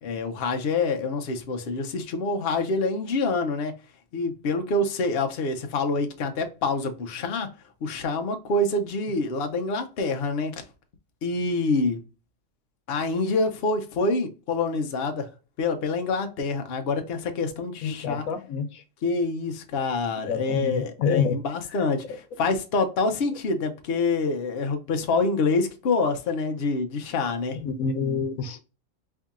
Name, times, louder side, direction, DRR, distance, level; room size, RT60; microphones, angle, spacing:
voice 1, 0.0-3.7 4.1-7.5 7.8-10.6 11.2-12.0 12.9-15.3 15.6-18.2 19.0-27.6, left 3 dB, 55° left, 0.8 m, -26 dB
voice 2, 17.8-18.8 20.3-21.4 27.5-28.6, left 5 dB, 90° left, 1.1 m, -27 dB
4.6 x 2.7 x 2.4 m
omnidirectional pair, 1.4 m